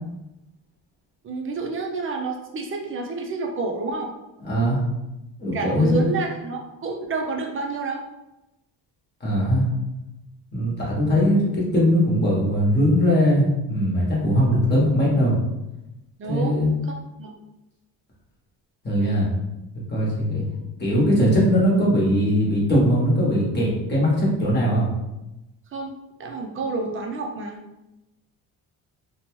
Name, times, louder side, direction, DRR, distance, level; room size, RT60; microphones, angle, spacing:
voice 1, 1.2-4.1 5.5-8.0 16.2-17.3 25.7-25.9 26.2-27.6, right 3 dB, 30° right, 2 dB, 0.4 m, -29 dB
voice 2, 4.4-4.8 5.4-6.0 9.2-9.7 10.5-15.3 16.3-16.7 18.8-19.3 19.9-20.4 20.8-24.9, equal, 25° left, -5 dB, 1.1 m, -20 dB
2.8 x 2.2 x 3.0 m, 0.95 s
cardioid pair, 125°, 43 cm